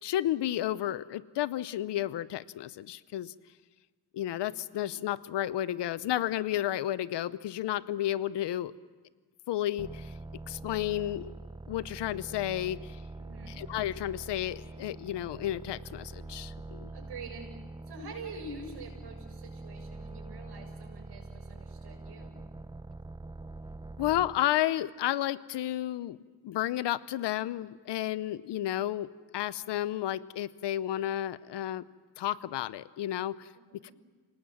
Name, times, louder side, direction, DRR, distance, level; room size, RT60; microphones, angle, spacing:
voice 1, 0.0-3.3 4.1-8.7 9.5-10.1 10.5-11.3 11.7-13.0 13.5-16.9 24.0-26.2 26.4-31.8 32.2-33.5 33.8-33.9, left 13 dB, 80° left, 17 dB, 0.8 m, -32 dB
sound 1, 9.8-24.5, right 2 dB, 10° right, 0.7 m, -44 dB
voice 2, 13.2-13.6 16.9-17.5 17.9-22.4 33.5-33.9, right 3 dB, 75° right, 2 dB, 7.0 m, -46 dB
27.0 x 19.0 x 7.7 m, 1.4 s
supercardioid pair, 50°, 41 cm